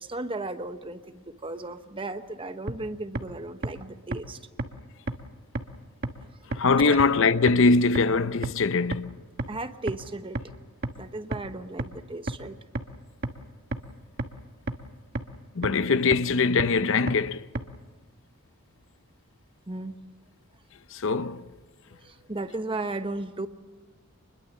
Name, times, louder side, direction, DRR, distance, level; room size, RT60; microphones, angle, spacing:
voice 1, 0.0-4.4 6.8-7.0 9.5-10.4 11.0-12.6 19.7-20.0 21.9-23.5, right 2 dB, 25° right, 1.0 m, -35 dB
sound 1, 2.7-2.8 3.2-3.3 3.6-3.7 4.1-4.2 4.6-4.7 5.1-5.2 5.6-5.7 6.0-6.1 6.5-6.6 7.0-7.1 7.5-7.6 8.0-8.1 8.4-8.5 8.9-9.0 9.4-9.5 9.9-10.0 10.4-10.5 10.8-10.9 11.3-11.4 11.8-11.9 12.3-12.4 12.8-12.9 13.2-13.3 13.7-13.8 14.2-14.3 14.7-14.8 15.2-15.3 15.6-15.7 16.1-16.2 16.6-16.7 17.1-17.2 17.6-17.7, right 2 dB, 45° right, 1.3 m, -28 dB
voice 2, 6.5-9.2 15.6-17.5 20.9-21.5, left 4 dB, 60° left, 0.7 m, -22 dB
25.5 x 21.5 x 7.4 m
head